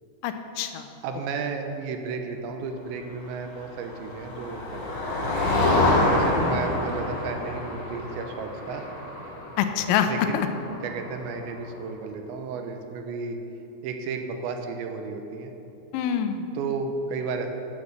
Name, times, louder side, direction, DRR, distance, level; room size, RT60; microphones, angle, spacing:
voice 1, 0.2-0.9 6.2-6.6 9.6-10.5 15.9-16.5, left 9 dB, 85° left, 7 dB, 3.0 m, -26 dB
voice 2, 1.0-5.3 6.1-8.9 10.1-10.5 10.8-13.4 13.8-15.5 16.6-17.5, right 4 dB, 80° right, 5 dB, 2.9 m, -33 dB
Motor vehicle (road), 3.6-11.4, left 2 dB, 55° left, 4.3 m, -27 dB
11.0 x 7.2 x 6.5 m, 2.9 s
omnidirectional pair, 5.4 m